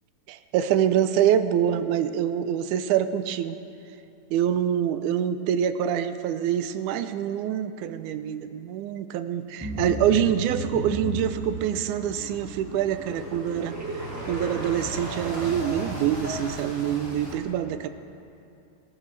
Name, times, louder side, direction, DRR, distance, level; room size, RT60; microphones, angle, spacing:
voice 1, 0.3-3.6 4.3-17.9, right 10 dB, 80° right, 11 dB, 2.0 m, -25 dB
sound 1, 9.6-16.5, equal, 15° right, 0.6 m, -35 dB
sound 2, 9.6-17.3, right 2 dB, 35° right, 5.2 m, -38 dB
26.5 x 13.5 x 3.3 m, 2.7 s
omnidirectional pair, 3.6 m